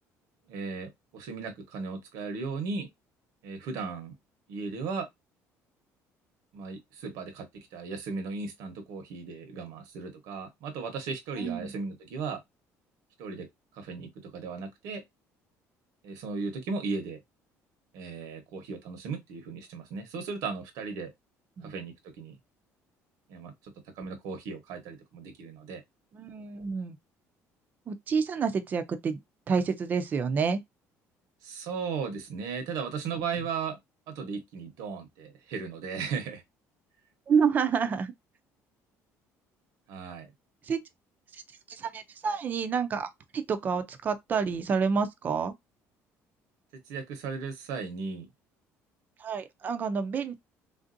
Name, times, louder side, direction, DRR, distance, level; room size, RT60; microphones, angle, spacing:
voice 1, 0.5-2.9 3.4-4.2 4.5-5.1 6.5-12.4 13.2-13.5 13.8-15.0 16.0-17.2 17.9-21.1 21.6-22.4 23.3-25.8 31.4-33.8 34.1-36.4 39.9-40.3 46.9-48.3, right 5 dB, 80° right, 1.0 m, -36 dB
voice 2, 11.4-11.7 21.6-21.7 26.1-27.0 27.9-29.2 29.5-30.6 33.1-33.5 37.3-38.1 40.6-40.8 41.7-45.5 49.2-50.3, right 6 dB, 30° right, 0.4 m, -29 dB
3.4 x 2.6 x 2.6 m
cardioid pair, 165°, 6 cm